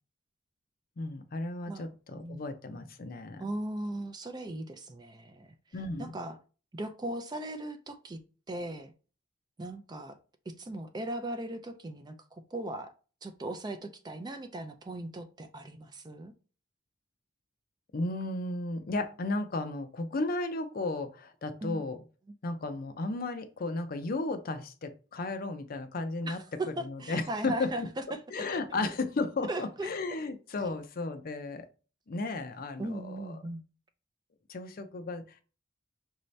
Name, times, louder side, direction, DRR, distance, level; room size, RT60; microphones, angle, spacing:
voice 1, 1.0-3.4 5.7-6.2 17.9-22.0 22.4-26.4 26.9-27.9 28.3-31.7 32.1-33.4 34.5-35.2, left 2 dB, 50° left, 0.5 m, -34 dB
voice 2, 1.7-2.4 3.4-5.5 6.0-6.4 6.7-8.2 8.5-8.9 9.6-10.2 10.5-12.9 13.2-16.3 21.6-21.8 26.2-28.2 29.5-29.9 30.6-30.8 32.8-33.6, right 1 dB, 20° right, 0.4 m, -38 dB
5.4 x 2.7 x 3.2 m
head